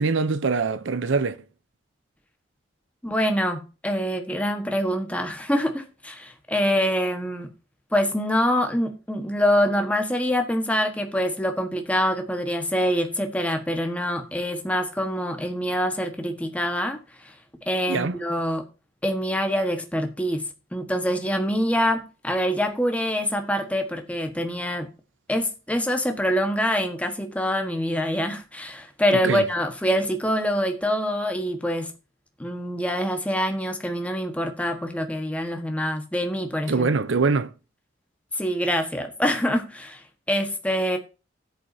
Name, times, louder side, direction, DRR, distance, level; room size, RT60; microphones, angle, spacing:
voice 1, 0.0-1.4 17.9-18.2 29.2-29.4 36.7-37.5, right 4 dB, 75° right, 0.6 m, -23 dB
voice 2, 3.0-7.5 7.9-17.3 17.7-18.6 19.0-20.4 20.7-24.9 25.3-31.9 32.4-36.9 38.3-41.0, equal, 5° left, 1.3 m, -25 dB
13.5 x 8.1 x 2.7 m
head